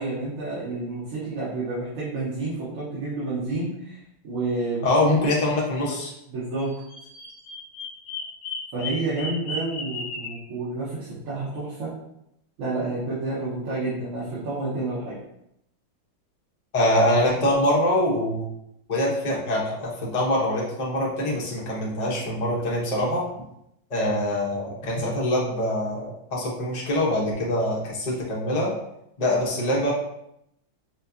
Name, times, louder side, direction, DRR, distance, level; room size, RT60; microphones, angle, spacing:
voice 1, 0.0-4.9 5.8-6.0 6.3-6.7 8.7-11.9 12.6-15.2, right 2 dB, 75° right, -9 dB, 1.9 m, -30 dB
voice 2, 4.8-6.1 16.7-18.5 18.9-23.2 23.9-28.7 29.2-29.9, left 1 dB, 50° left, -4 dB, 0.4 m, -24 dB
Bird vocalization bird call bird song, 6.6-10.4, left 3 dB, 80° left, 1.5 m, -35 dB
6.2 x 2.3 x 2.7 m, 0.78 s
omnidirectional pair, 2.3 m